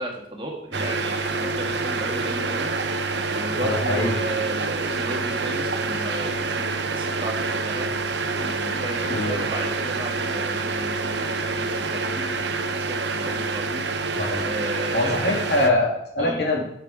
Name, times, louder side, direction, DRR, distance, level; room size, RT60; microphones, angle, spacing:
voice 1, 0.0-7.9 8.4-12.2 12.8-13.8 14.4-15.4 16.2-16.4, right 1 dB, 25° right, 0 dB, 1.7 m, -34 dB
sound 1, 0.7-15.7, right 3 dB, 70° right, 0.9 m, -27 dB
voice 2, 3.6-4.2 9.1-9.4 14.1-14.5 14.9-16.6, left 2 dB, 60° left, -2 dB, 3.0 m, -23 dB
11.5 x 6.7 x 5.1 m, 0.76 s
head